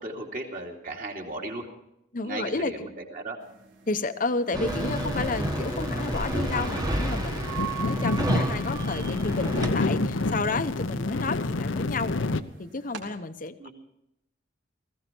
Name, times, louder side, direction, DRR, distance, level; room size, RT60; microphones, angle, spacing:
voice 1, 0.0-1.7 2.2-3.4 13.6-13.7, right 2 dB, 40° right, 0 dB, 2.8 m, -36 dB
voice 2, 2.1-2.9 3.9-12.2 12.6-13.7, left 3 dB, 40° left, 10 dB, 0.9 m, -31 dB
sound 1, 3.4-13.0, right 3 dB, 75° right, 3.8 m, -52 dB
sound 2, 4.5-9.7, right 1 dB, 20° right, 1.4 m, -30 dB
sound 3, 4.6-12.4, left 3 dB, 70° left, 0.8 m, -29 dB
19.0 x 16.0 x 4.5 m, 0.81 s
head